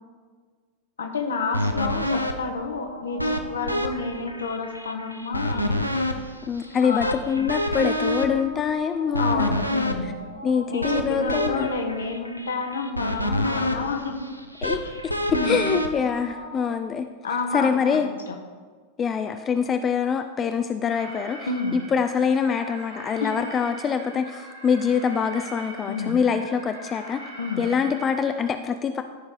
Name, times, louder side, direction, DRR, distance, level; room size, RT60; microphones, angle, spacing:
voice 1, 1.0-5.9 6.8-7.2 9.2-10.1 10.7-14.2 14.8-14.9 15.3-15.7 17.2-18.1 21.5-21.8 23.2-23.3 25.9-26.2 27.4-27.6, left 4 dB, 70° left, 4 dB, 1.1 m, -29 dB
sound 1, 1.5-16.8, left 1 dB, 90° left, 0.6 m, -28 dB
voice 2, 6.5-9.6 10.4-11.7 14.6-14.8 15.0-17.1 17.5-18.1 19.0-27.2 27.6-29.0, left 6 dB, 25° left, 8 dB, 0.4 m, -25 dB
Alarm, 20.9-28.5, right 2 dB, 75° right, 2.3 m, -42 dB
14.0 x 4.7 x 3.9 m, 1.5 s
figure-of-eight pair, 90°, 0 cm